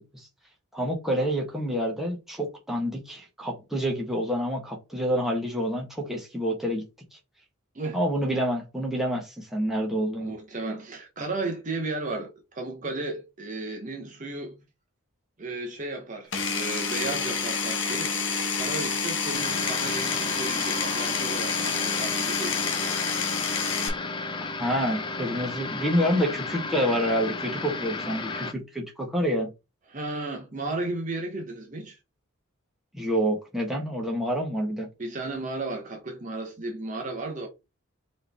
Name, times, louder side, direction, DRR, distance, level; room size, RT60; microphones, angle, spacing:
voice 1, 0.7-6.8 7.9-10.3 24.6-29.5 32.9-34.9, equal, ahead, 1.2 m, -28 dB
voice 2, 10.2-14.6 15.4-18.1 18.6-22.9 29.9-32.0 35.0-37.5, right 2 dB, 35° right, 0.8 m, -34 dB
Power tool, 16.3-23.9, left 5 dB, 60° left, 0.9 m, -28 dB
sound 1, 19.3-28.5, left 3 dB, 20° left, 0.5 m, -34 dB
4.8 x 3.1 x 3.4 m
head